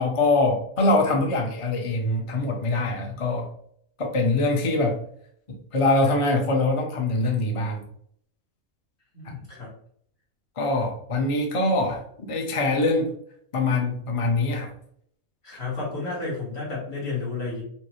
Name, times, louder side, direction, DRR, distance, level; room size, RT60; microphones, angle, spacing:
voice 1, 0.0-3.5 4.0-5.0 5.5-7.8 10.6-12.0 12.3-13.1 13.5-14.7, left 2 dB, 35° left, 1 dB, 0.5 m, -23 dB
voice 2, 9.1-9.7 15.4-17.6, left 3 dB, 65° left, -6 dB, 2.0 m, -31 dB
5.4 x 2.1 x 3.0 m, 0.65 s
omnidirectional pair, 1.4 m